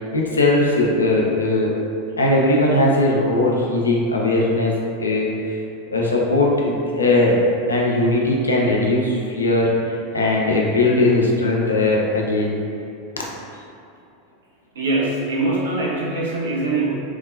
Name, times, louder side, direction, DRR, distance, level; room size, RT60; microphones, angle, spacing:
voice 1, 0.1-1.7 2.2-4.7 5.0-5.6 5.9-7.4 7.7-9.7 10.1-12.6 13.2-13.3, left 2 dB, 75° left, -2 dB, 0.5 m, -19 dB
voice 2, 14.7-17.0, right 2 dB, 65° right, -4 dB, 0.7 m, -22 dB
3.6 x 3.1 x 2.5 m, 2.5 s
figure-of-eight pair, 85°, 0 cm